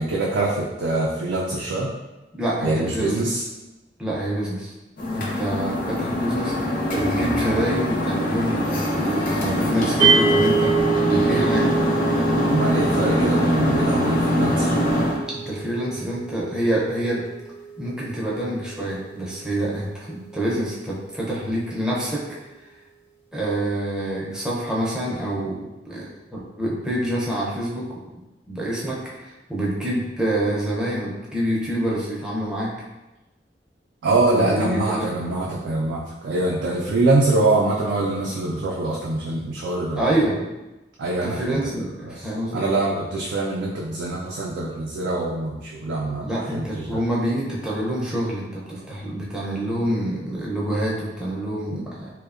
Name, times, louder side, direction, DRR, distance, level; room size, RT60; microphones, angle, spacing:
voice 1, 0.0-1.9 2.6-3.4 12.4-14.8 34.0-40.2 41.0-41.6 42.0-47.0, right 2 dB, 80° right, -3 dB, 0.3 m, -24 dB
voice 2, 2.3-3.2 4.0-4.7 5.1-10.7 11.0-11.7 15.3-17.3 17.8-22.3 23.3-27.9 28.5-32.7 34.3-35.1 39.9-40.4 41.2-42.6 46.2-52.1, right 1 dB, 5° right, -6 dB, 0.4 m, -26 dB
sound 1, 5.0-15.2, left 1 dB, 50° left, 0.5 m, -23 dB
sound 2, 10.0-20.3, right 5 dB, 75° left, 0.8 m, -27 dB
2.7 x 2.1 x 2.4 m, 1.1 s
head